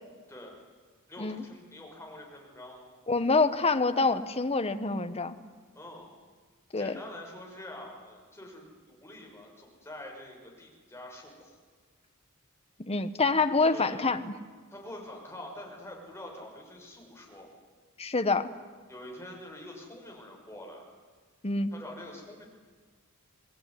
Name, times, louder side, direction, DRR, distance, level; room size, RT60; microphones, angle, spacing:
voice 1, 1.1-2.9 5.7-6.1 6.8-11.6 13.7-14.1 14.7-17.5 18.9-20.8 21.7-22.4, left 1 dB, 10° left, 0 dB, 6.0 m, -45 dB
voice 2, 3.1-5.4 6.7-6.9 12.8-14.2 18.0-18.5 21.4-21.7, left 3 dB, 30° left, 10 dB, 1.1 m, -26 dB
26.0 x 19.0 x 9.8 m, 1.5 s
head